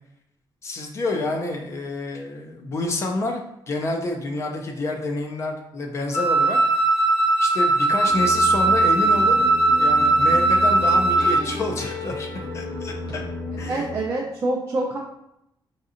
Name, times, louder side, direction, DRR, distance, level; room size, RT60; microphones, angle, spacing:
voice 1, 0.6-3.4 3.7-6.6 7.4-9.4 9.8-12.3 12.5-13.2 13.6-13.9, left 2 dB, 35° left, 2 dB, 0.4 m, -28 dB
Wind instrument woodwind instrument, 6.1-11.5, right 2 dB, 85° left, 0.9 m, -19 dB
sound 1, 8.0-14.0, left 2 dB, 60° left, 0.9 m, -33 dB
voice 2, 13.7-15.0, right 2 dB, 30° right, -3 dB, 0.5 m, -26 dB
5.0 x 2.7 x 2.5 m, 0.80 s
wide cardioid pair, 180°, 9 cm